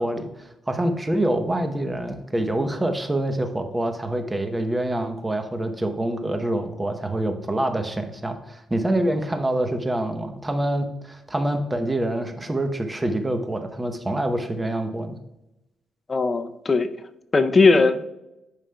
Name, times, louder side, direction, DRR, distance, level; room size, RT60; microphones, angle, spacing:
voice 1, 0.0-15.2, right 1 dB, 15° right, 7 dB, 0.8 m, -26 dB
voice 2, 16.1-16.9 17.3-18.0, left 3 dB, 30° left, 10 dB, 0.5 m, -18 dB
11.0 x 5.0 x 2.3 m, 0.92 s
cardioid pair, 90°, 0 cm